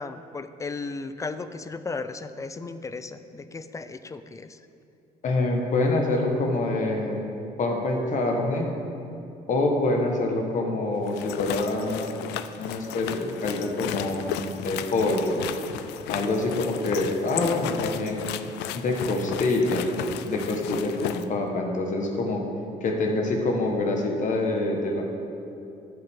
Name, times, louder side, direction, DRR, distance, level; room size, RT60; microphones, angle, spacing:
voice 1, 0.0-4.6, left 3 dB, 20° left, 11 dB, 0.3 m, -35 dB
voice 2, 5.2-7.2 7.6-8.7 9.5-12.1 12.6-15.4 16.1-18.3 18.7-19.9 20.2-22.4 22.8-25.1, left 2 dB, 50° left, 2 dB, 1.3 m, -26 dB
sound 1, 11.0-21.3, left 11 dB, 85° left, 0.4 m, -34 dB
10.0 x 7.7 x 3.6 m, 2.7 s
cardioid pair, 110°, 17 cm